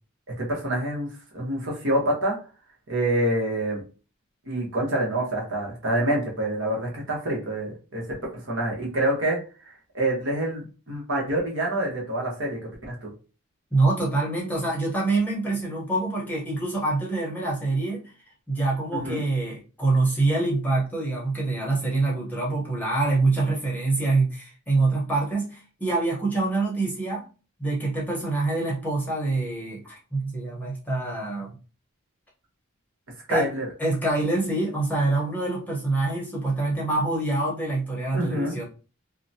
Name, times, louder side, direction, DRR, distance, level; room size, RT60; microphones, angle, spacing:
voice 1, 0.4-1.1 1.3-2.4 2.9-3.8 4.4-12.6 12.9-13.1 18.9-19.2 33.3-33.7 38.1-38.5, right 1 dB, 60° right, -2 dB, 1.1 m, -27 dB
voice 2, 13.7-18.0 18.5-27.2 27.6-31.5 33.3-33.5 33.8-38.6, right 2 dB, 10° left, -4 dB, 0.9 m, -25 dB
2.7 x 2.2 x 2.7 m, 0.35 s
head